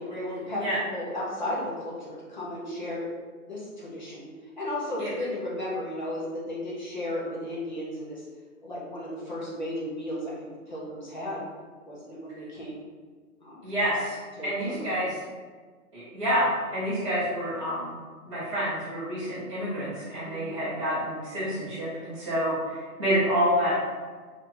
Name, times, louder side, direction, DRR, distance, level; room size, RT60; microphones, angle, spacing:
voice 1, 0.0-3.1 3.5-4.3 4.6-8.2 8.6-11.4 11.8-12.8 13.4-13.7 14.4-14.8 20.2-20.6, left 1 dB, 30° left, -7 dB, 0.7 m, -34 dB
voice 2, 13.6-15.1 15.9-17.9 18.2-23.8, equal, 20° right, -16 dB, 0.7 m, -28 dB
2.8 x 2.7 x 3.7 m, 1.5 s
hypercardioid pair, 175°, 45 cm